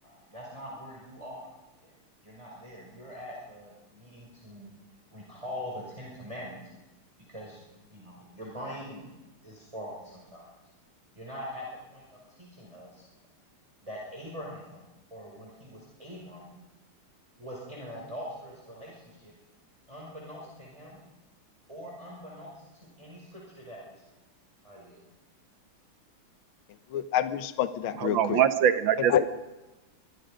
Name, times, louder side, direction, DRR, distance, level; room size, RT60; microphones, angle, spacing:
voice 1, 0.0-1.5 1.8-1.9 2.2-4.7 5.1-6.6 7.3-7.6 7.9-9.1 9.4-10.5 11.2-12.0 12.4-13.0 13.8-16.5 17.4-19.3 19.9-21.0 21.7-24.0 24.6-25.0, equal, 15° right, -3 dB, 5.5 m, -43 dB
voice 2, 26.9-28.4 29.1-29.2, left 10 dB, 75° left, 11 dB, 1.7 m, -27 dB
voice 3, 28.0-29.2, right 9 dB, 65° right, 10 dB, 1.8 m, -23 dB
24.5 x 23.5 x 5.2 m, 1.0 s
omnidirectional pair, 2.4 m